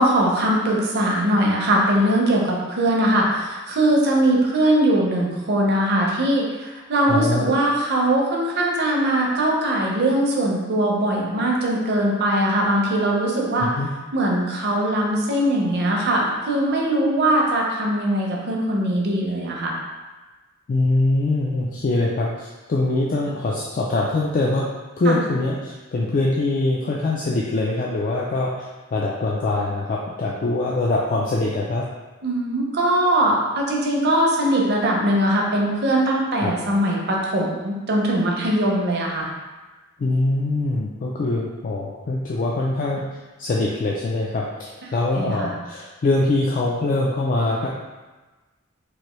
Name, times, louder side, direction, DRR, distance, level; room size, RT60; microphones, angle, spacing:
voice 1, 0.0-13.7 14.1-19.8 25.1-25.2 32.2-39.3 44.8-45.5, right 1 dB, 55° right, -2 dB, 0.6 m, -21 dB
voice 2, 7.1-7.5 13.6-13.9 20.7-24.7 25.0-31.8 36.4-36.5 40.0-43.0 43.4-47.7, left 2 dB, 40° left, -4 dB, 0.3 m, -23 dB
3.1 x 2.5 x 3.0 m, 1.2 s
head